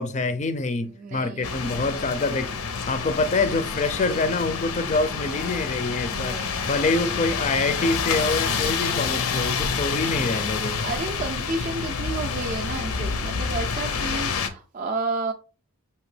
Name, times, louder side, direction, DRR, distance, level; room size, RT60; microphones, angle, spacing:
voice 1, 0.0-2.5 2.9-10.9, left 3 dB, 30° left, 0.4 m, -26 dB
voice 2, 1.0-1.8 6.1-7.1 10.8-15.3, right 3 dB, 35° right, 0.4 m, -32 dB
sound 1, 1.4-14.5, left 5 dB, 90° left, 0.6 m, -28 dB
5.9 x 2.8 x 3.2 m
head